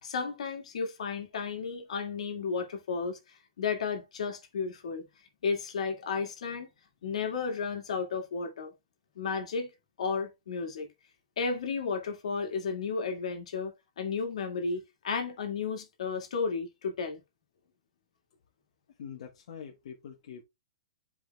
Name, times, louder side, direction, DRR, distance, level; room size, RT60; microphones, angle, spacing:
voice 1, 0.0-5.0 5.4-6.7 7.0-8.7 9.2-9.7 10.0-10.9 11.4-17.2, left 5 dB, 75° left, 1.7 m, -33 dB
voice 2, 19.0-20.4, left 7 dB, 60° left, 1.1 m, -44 dB
10.5 x 4.9 x 2.2 m
hypercardioid pair, 165°, 3 cm